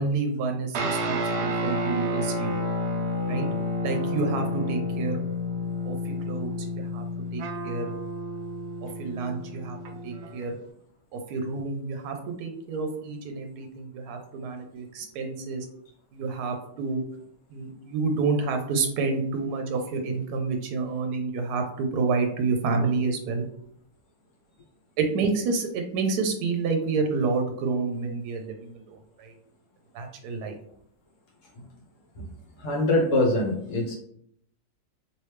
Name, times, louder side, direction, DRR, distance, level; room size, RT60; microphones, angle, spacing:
voice 1, 0.0-2.5 3.3-3.5 3.8-5.2 5.8-7.0 7.3-7.9 9.0-9.8 10.0-10.5 11.1-15.6 16.1-17.0 17.5-23.5 25.0-29.3 29.9-30.5, right 4 dB, 85° right, 4 dB, 1.1 m, -29 dB
sound 1, 0.7-10.4, left 1 dB, 65° right, 0.6 m, -30 dB
voice 2, 32.6-33.9, left 1 dB, 60° left, -1 dB, 1.2 m, -23 dB
3.1 x 2.9 x 3.2 m, 0.68 s
omnidirectional pair, 1.6 m